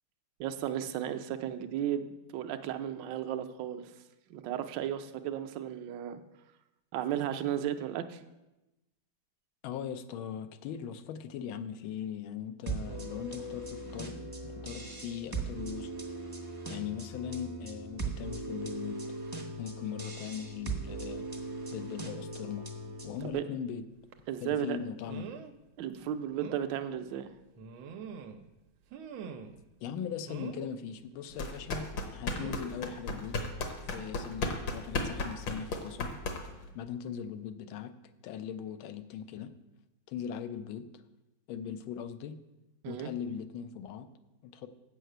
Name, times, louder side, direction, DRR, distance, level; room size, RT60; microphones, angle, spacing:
voice 1, 0.4-3.9 4.3-6.2 6.9-8.2 23.2-23.4 24.3-24.8 25.8-27.3 42.8-43.1, right 10 dB, 70° right, 8 dB, 1.3 m, -34 dB
voice 2, 9.6-15.9 16.7-19.1 19.6-21.3 21.7-22.7 23.0-23.8 24.4-25.3 29.8-33.4 33.9-36.1 36.7-39.5 40.1-41.0 41.5-42.4 42.8-44.1 44.4-44.7, left 8 dB, 90° left, 10 dB, 1.5 m, -40 dB
sound 1, 12.7-23.3, right 2 dB, 25° right, 0.4 m, -39 dB
sound 2, 24.1-24.3 25.1-25.5 25.9-26.0 26.4-26.6 27.6-28.5 28.9-29.6 30.3-30.7 32.3-32.7 33.9-34.1 34.4-34.5, right 6 dB, 90° right, 1.5 m, -44 dB
sound 3, 31.3-36.7, left 3 dB, 70° left, 1.8 m, -35 dB
7.9 x 5.6 x 7.8 m, 0.98 s
omnidirectional pair, 2.2 m